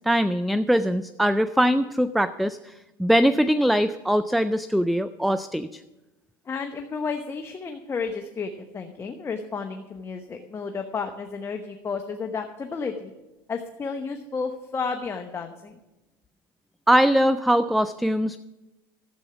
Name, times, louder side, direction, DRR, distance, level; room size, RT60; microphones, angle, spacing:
voice 1, 0.0-2.7 3.0-5.8 16.9-18.4, equal, ahead, 13 dB, 0.4 m, -22 dB
voice 2, 6.5-13.1 13.5-15.8, left 5 dB, 25° left, 5 dB, 1.0 m, -32 dB
13.5 x 8.1 x 5.9 m, 1.0 s
supercardioid pair, 105°, 12 cm